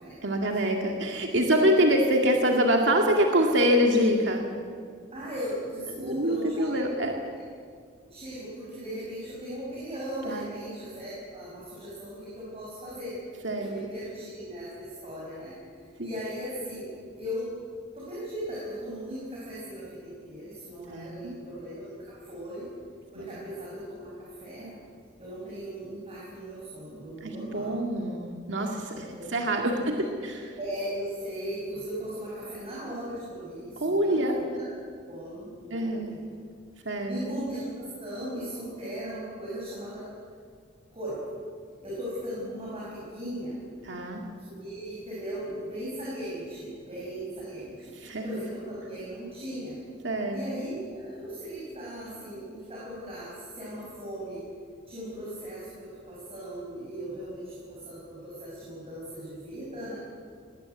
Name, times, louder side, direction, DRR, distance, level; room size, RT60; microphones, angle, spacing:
voice 1, 0.2-4.5 5.9-7.2 10.2-10.5 13.4-13.7 16.0-16.1 20.9-21.4 23.2-23.3 27.2-28.7 29.0-30.0 30.2-30.5 33.8-34.4 35.7-36.2 36.9-37.4 43.8-44.3 48.0-48.3 50.0-50.6, equal, 70° right, 2 dB, 2.1 m, -25 dB
voice 2, 5.1-6.8 8.0-13.2 13.6-17.5 17.9-22.7 23.1-24.8 25.2-27.8 29.1-29.5 29.8-29.9 30.6-34.7 35.1-36.3 36.8-40.1 40.9-41.2 41.8-43.6 44.6-47.8 48.2-49.8 50.3-54.4 54.9-60.0, equal, 30° right, -6 dB, 6.4 m, -38 dB
20.5 x 18.0 x 8.3 m, 2.1 s
head